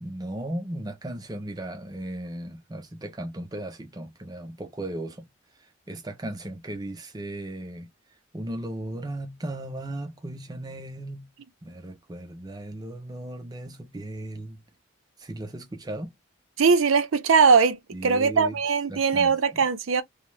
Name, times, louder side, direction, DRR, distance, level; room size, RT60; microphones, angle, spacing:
voice 1, 0.0-5.3 5.9-7.9 8.3-11.3 11.6-14.6 15.2-16.1 17.9-18.6 18.9-19.7, right 1 dB, 20° right, 0.5 m, -36 dB
voice 2, 16.6-17.8 18.0-20.0, right 5 dB, 85° right, 0.5 m, -20 dB
2.6 x 2.0 x 3.1 m
head